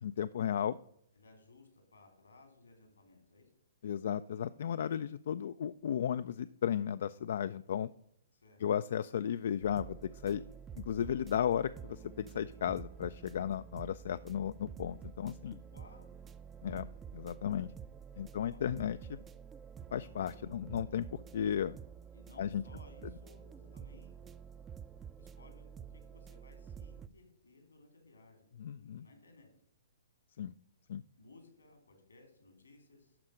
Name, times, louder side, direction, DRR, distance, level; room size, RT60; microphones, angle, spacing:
voice 1, 0.0-0.8 3.8-7.9 8.6-10.4 10.8-15.6 16.6-16.9 17.1-17.7 18.2-19.0 19.9-21.1 21.3-21.7 22.4-22.6 28.6-29.1 30.4-30.5 30.9-31.0, left 9 dB, 60° left, 14 dB, 0.3 m, -34 dB
voice 2, 1.1-3.5 8.3-8.6 15.7-16.1 18.1-18.8 22.1-24.2 25.2-29.5 31.2-33.2, left 3 dB, 85° left, 5 dB, 3.4 m, -60 dB
sound 1, 9.6-27.1, right 7 dB, 15° right, 0.4 m, -49 dB
12.0 x 4.4 x 6.3 m, 0.73 s
hypercardioid pair, 125°, 0 cm